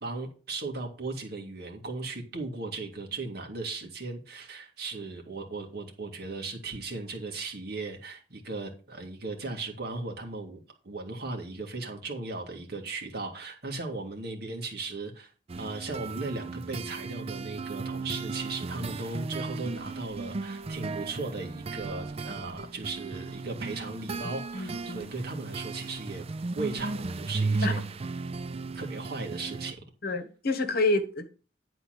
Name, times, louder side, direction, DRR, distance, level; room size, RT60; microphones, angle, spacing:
voice 1, 0.0-10.6 10.8-15.3 15.6-26.2 26.5-28.0 28.7-29.8 30.1-30.2, right 3 dB, 60° right, 2.1 m, -37 dB
sound 1, 15.5-29.7, right 3 dB, 35° right, 0.4 m, -35 dB
voice 2, 24.5-25.1 27.6-27.8 30.0-31.3, left 2 dB, 55° left, 1.2 m, -28 dB
10.5 x 4.4 x 5.9 m
head